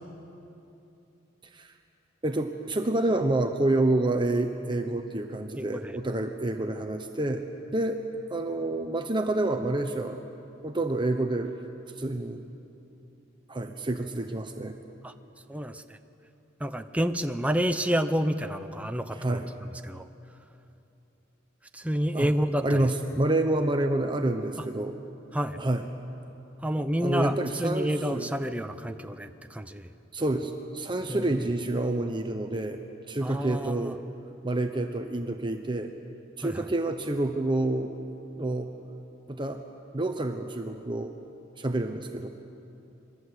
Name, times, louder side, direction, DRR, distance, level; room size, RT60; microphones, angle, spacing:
voice 1, 2.2-7.4 7.7-8.0 8.3-10.2 10.6-11.5 12.0-12.4 13.5-14.7 19.1-19.5 22.1-22.3 22.6-25.0 25.6-25.8 27.0-28.3 30.1-32.8 33.1-34.0 34.4-35.9 36.4-38.0 38.4-38.7 39.3-39.6 39.9-41.1 41.6-42.3, right 2 dB, 25° right, 5 dB, 1.0 m, -28 dB
voice 2, 5.6-5.9 15.0-15.1 15.5-16.0 16.6-19.4 19.8-20.0 21.7-22.8 25.3-25.6 26.6-29.9 31.1-31.3 33.2-33.9 36.4-36.6, equal, 5° right, 7 dB, 0.7 m, -29 dB
27.0 x 22.5 x 8.2 m, 2.8 s
head